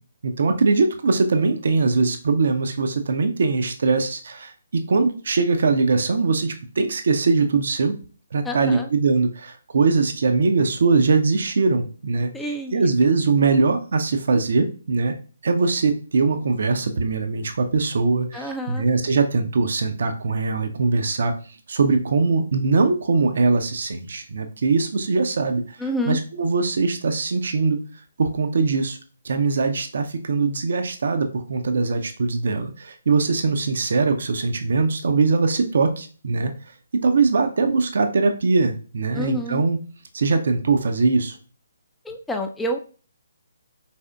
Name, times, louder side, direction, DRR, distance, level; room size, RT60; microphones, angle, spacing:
voice 1, 0.2-7.9 8.3-12.3 12.7-15.1 15.4-21.3 21.7-25.6 26.1-27.8 28.2-29.0 29.2-36.5 37.0-39.8 40.1-41.4, right 4 dB, 55° right, 7 dB, 0.5 m, -21 dB
voice 2, 8.4-8.9 12.3-12.8 18.3-18.9 25.8-26.2 39.1-39.6 42.0-42.8, equal, 5° left, 3 dB, 0.4 m, -28 dB
4.7 x 4.1 x 2.3 m, 0.39 s
figure-of-eight pair, 135°, 0 cm